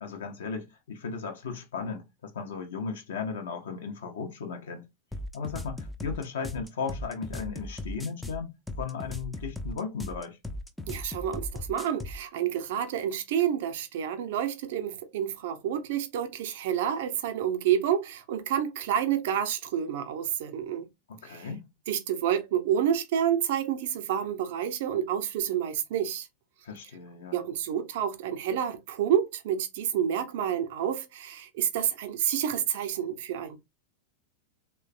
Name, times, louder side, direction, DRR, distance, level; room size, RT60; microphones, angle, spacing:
voice 1, 0.0-4.9 5.3-10.4 21.1-21.6 26.6-27.4, left 5 dB, 60° left, 0.5 m, -36 dB
sound 1, 5.1-12.2, left 1 dB, 5° left, 0.3 m, -37 dB
voice 2, 10.9-20.9 21.2-21.5 21.9-26.3 27.3-33.6, right 9 dB, 55° right, 0.5 m, -29 dB
3.1 x 2.1 x 2.4 m
figure-of-eight pair, 90°, 0 cm